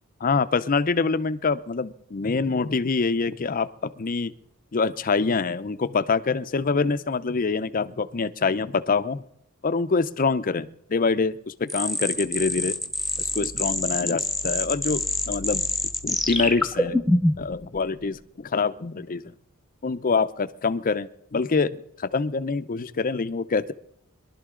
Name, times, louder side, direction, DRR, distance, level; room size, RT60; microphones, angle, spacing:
voice 1, 0.2-4.3 4.7-9.2 9.6-12.7 13.2-15.7 16.0-17.0 17.4-19.2 19.8-23.7, left 4 dB, 40° left, 13 dB, 0.6 m, -25 dB
sound 1, 11.7-17.5, left 1 dB, ahead, 1.1 m, -25 dB
22.0 x 12.0 x 3.8 m, 0.72 s
head